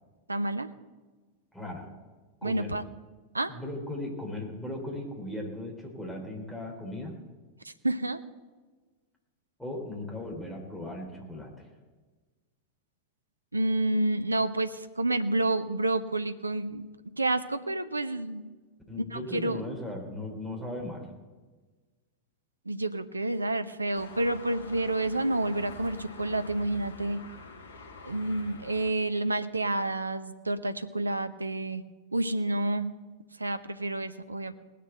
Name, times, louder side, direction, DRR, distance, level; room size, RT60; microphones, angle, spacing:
voice 1, 0.3-0.7 2.4-2.8 3.3-3.5 7.6-8.2 13.5-16.9 17.2-18.5 19.1-19.6 22.7-27.2 28.0-31.8 32.1-32.9 33.4-34.5, right 2 dB, 80° right, 11 dB, 0.7 m, -29 dB
voice 2, 1.5-1.9 2.4-2.7 3.5-7.2 9.6-11.7 18.9-21.1, left 1 dB, 5° left, -1 dB, 3.5 m, -37 dB
sound 1, 23.9-28.9, left 3 dB, 65° left, 1.8 m, -46 dB
19.0 x 6.7 x 7.9 m, 1.3 s
figure-of-eight pair, 90°, 0 cm